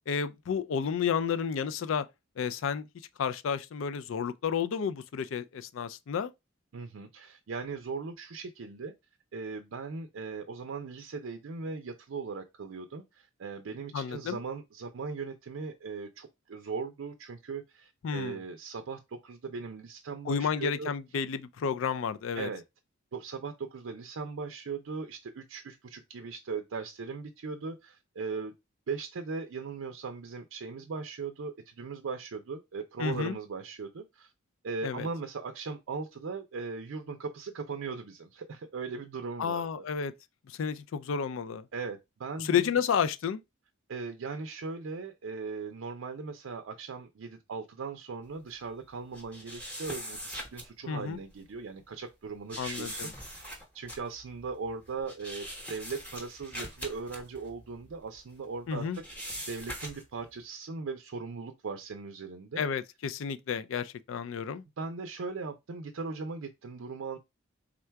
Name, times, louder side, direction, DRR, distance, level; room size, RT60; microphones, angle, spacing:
voice 1, 0.1-2.1 2.4-2.9 3.2-6.3 13.9-14.4 18.0-18.4 20.2-22.5 33.0-33.4 34.8-35.1 39.4-40.1 40.5-41.7 42.4-43.4 50.9-51.2 52.6-53.1 58.7-59.0 62.6-64.6, left 7 dB, 70° left, 0.4 m, -31 dB
voice 2, 6.7-8.9 9.3-20.9 22.3-22.6 23.1-28.5 28.9-34.3 34.6-39.9 41.7-42.7 43.9-62.6 64.8-67.2, right 4 dB, 75° right, 0.5 m, -39 dB
sound 1, 49.1-50.7 51.1-51.3 52.5-58.4 58.7-60.2, equal, 5° left, 0.9 m, -42 dB
3.7 x 2.2 x 4.4 m
head